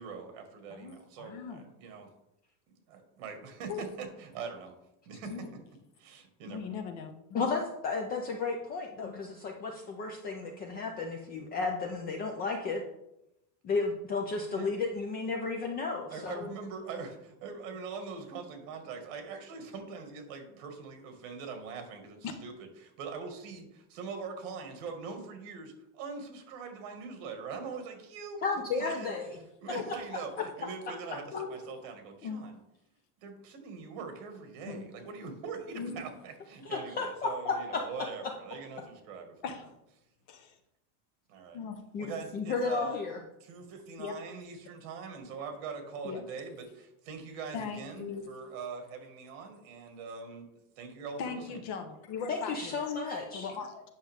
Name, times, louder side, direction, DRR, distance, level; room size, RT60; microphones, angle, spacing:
voice 1, 0.0-2.1 2.9-4.7 5.1-5.5 6.0-6.7 14.5-14.7 16.1-22.5 22.8-29.1 29.6-32.5 33.2-39.4 41.3-41.6 42.0-43.0 43.4-50.5 50.8-51.6, right 5 dB, 60° right, 5 dB, 1.9 m, -42 dB
voice 2, 0.7-1.6 3.7-3.9 5.2-5.5 6.5-7.5 9.0-9.1 22.2-22.3 28.8-28.9 29.7-29.8 30.4-30.5 31.3-31.5 32.2-32.4 34.7-34.8 35.7-36.1 39.4-39.7 40.3-40.6 41.5-41.8 44.0-44.1 46.0-46.2 47.5-48.3 51.2-53.0 53.3-53.8, left 6 dB, 40° left, 7 dB, 1.0 m, -39 dB
voice 3, 7.3-12.8 13.6-16.5 28.4-29.2 36.6-37.8 41.9-42.1 42.3-43.2 52.3-53.5, left 4 dB, 20° left, 2 dB, 0.4 m, -33 dB
9.3 x 6.3 x 3.5 m, 0.85 s
cardioid pair, 170°, 44 cm